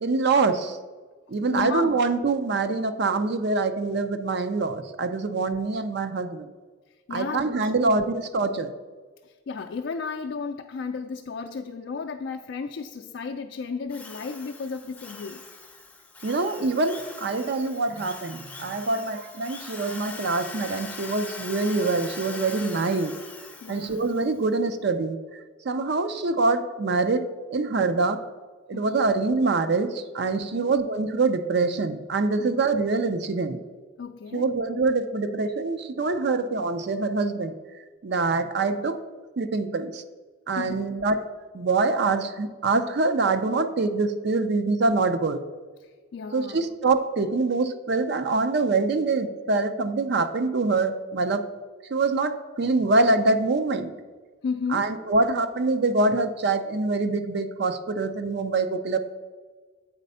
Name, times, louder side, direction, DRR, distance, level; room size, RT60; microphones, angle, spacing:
voice 1, 0.0-0.8 1.3-6.5 7.1-8.7 16.2-23.1 23.7-25.2 25.6-28.2 28.7-33.6 34.3-37.5 38.0-39.0 39.4-40.0 40.5-41.3 41.5-45.4 46.3-51.5 51.9-53.9 54.7-59.0, right 3 dB, 55° right, 9 dB, 0.5 m, -25 dB
voice 2, 1.5-2.0 6.9-8.0 9.2-15.4 23.6-24.0 28.7-29.0 30.4-30.7 32.4-32.5 34.0-34.5 40.6-40.9 45.8-46.6 54.4-54.9, left 5 dB, 65° left, 5 dB, 0.4 m, -34 dB
Drill, 13.9-24.3, left 3 dB, 5° left, 0.5 m, -42 dB
8.1 x 4.2 x 5.4 m, 1.4 s
head